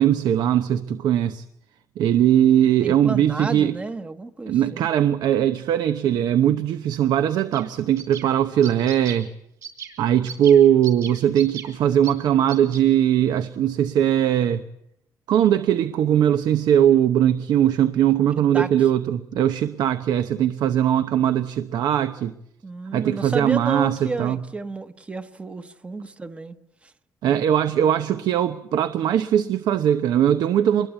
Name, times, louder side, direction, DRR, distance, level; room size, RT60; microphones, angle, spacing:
voice 1, 0.0-1.4 2.0-3.7 4.5-9.3 10.0-14.6 15.3-22.3 22.9-24.4 27.2-30.9, right 10 dB, 80° right, 0.9 m, -20 dB
voice 2, 2.8-4.9 18.5-18.7 22.6-26.6 27.3-27.4, right 3 dB, 15° right, 1.0 m, -31 dB
sound 1, 7.4-7.6 8.0-8.3 8.6-9.2 9.6-9.9 10.3-10.6 10.8-11.7 12.0-12.1 12.5-12.8, right 7 dB, 55° right, 4.7 m, -36 dB
26.0 x 21.5 x 8.2 m
cardioid pair, 175°, 7 cm